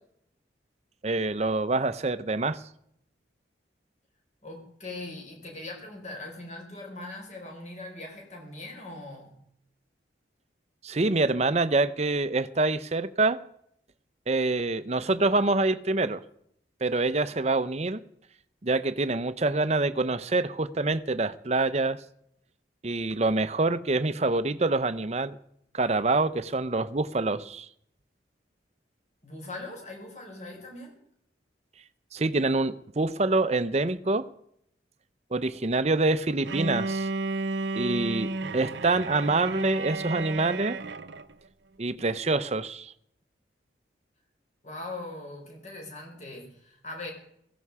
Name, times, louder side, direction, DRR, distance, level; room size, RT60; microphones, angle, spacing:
voice 1, 1.0-2.6 10.8-13.4 14.3-16.2 16.8-18.0 18.6-22.0 22.8-25.4 25.7-27.7 32.1-34.2 35.3-37.1 37.7-40.8 41.8-42.9, right 2 dB, 35° right, 0.7 m, -26 dB
voice 2, 4.4-9.4 29.2-30.9 44.6-47.1, left 2 dB, 40° left, 4.9 m, -41 dB
Bowed string instrument, 36.5-41.3, right 3 dB, 70° right, 0.8 m, -33 dB
16.5 x 15.5 x 4.8 m
head